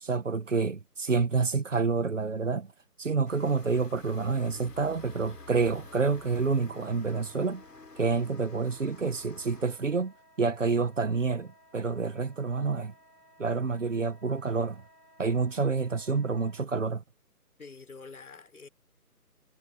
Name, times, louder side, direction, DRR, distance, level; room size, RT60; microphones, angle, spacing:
voice 1, 0.0-2.7 3.0-7.6 8.0-12.9 13.4-14.8 15.2-17.0, right 4 dB, 50° right, 1.7 m, -28 dB
sound 1, 3.3-9.7, left 3 dB, 85° left, 7.9 m, -50 dB
Wind instrument woodwind instrument, 4.9-16.7, equal, 80° right, 5.8 m, -59 dB
voice 2, 17.6-18.7, left 4 dB, 65° left, 4.3 m, -46 dB
hypercardioid pair, 180°, 47 cm